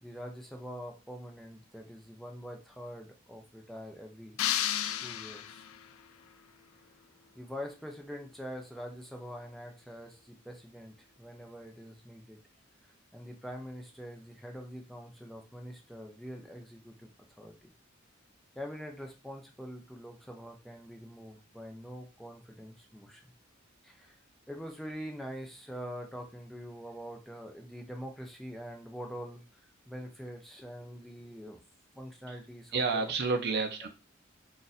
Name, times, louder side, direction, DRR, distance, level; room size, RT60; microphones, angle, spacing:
voice 1, 0.0-4.4 5.0-5.7 7.4-12.4 13.1-17.1 17.4-17.7 18.6-23.2 23.8-24.2 24.5-31.6 31.9-33.1 33.5-33.6, equal, ahead, 1 dB, 0.5 m, -44 dB
sound 1, 4.4-5.9, left 11 dB, 75° left, 0.3 m, -32 dB
voice 2, 32.7-33.9, right 4 dB, 55° right, 6 dB, 0.6 m, -30 dB
2.6 x 2.5 x 4.0 m, 0.29 s
head